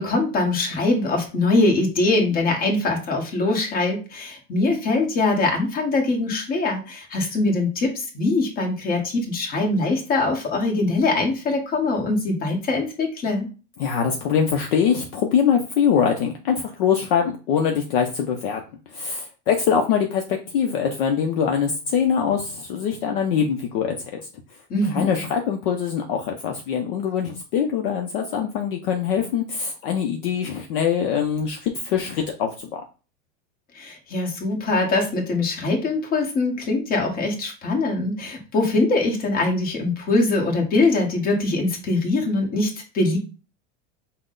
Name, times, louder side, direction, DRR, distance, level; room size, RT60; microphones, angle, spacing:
voice 1, 0.0-13.5 24.7-25.1 33.7-43.2, left 2 dB, 25° left, 2 dB, 1.2 m, -22 dB
voice 2, 13.8-18.6 18.9-24.2 24.9-32.8, left 7 dB, 50° left, 3 dB, 0.6 m, -23 dB
5.8 x 2.1 x 3.8 m, 0.34 s
supercardioid pair, 170°, 35 cm